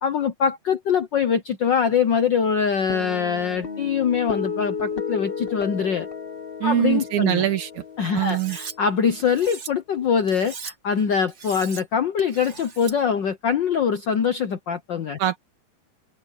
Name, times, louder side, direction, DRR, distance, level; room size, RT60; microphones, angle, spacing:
voice 1, 0.0-6.1 6.6-7.5 8.0-15.2, left 7 dB, 65° left, 1.1 m, -23 dB
sound 1, 2.9-9.5, left 5 dB, 45° left, 0.7 m, -33 dB
voice 2, 6.6-7.8 8.1-8.6 15.2-15.4, right 13 dB, 80° right, 3.2 m, -23 dB
Cutlery silverware, 8.3-8.7 9.2-9.7 10.3-10.7 11.3-11.8 12.2-12.9, right 5 dB, 45° right, 0.9 m, -38 dB
omnidirectional pair, 3.3 m